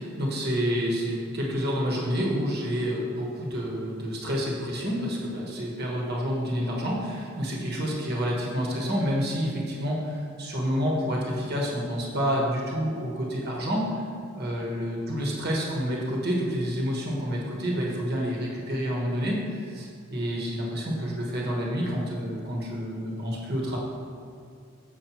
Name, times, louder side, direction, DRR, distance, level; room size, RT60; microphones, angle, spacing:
voice 1, 0.0-13.9 14.3-23.8, equal, 50° right, -2 dB, 1.2 m, -28 dB
6.9 x 6.5 x 3.0 m, 2.3 s
head